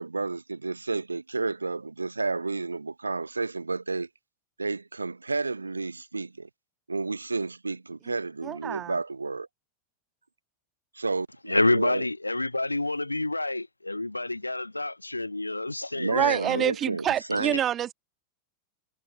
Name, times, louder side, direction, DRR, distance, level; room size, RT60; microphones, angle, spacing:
voice 1, 0.0-4.1 4.6-6.5 6.9-9.5 11.0-12.0 16.0-17.6, right 3 dB, 80° right, 0.8 m, -31 dB
voice 2, 8.4-9.0 16.1-17.9, right 10 dB, 30° right, 1.7 m, -27 dB
voice 3, 11.4-16.6 17.5-17.6, left 2 dB, 85° left, 0.6 m, -28 dB
figure-of-eight pair, 90°, 0 cm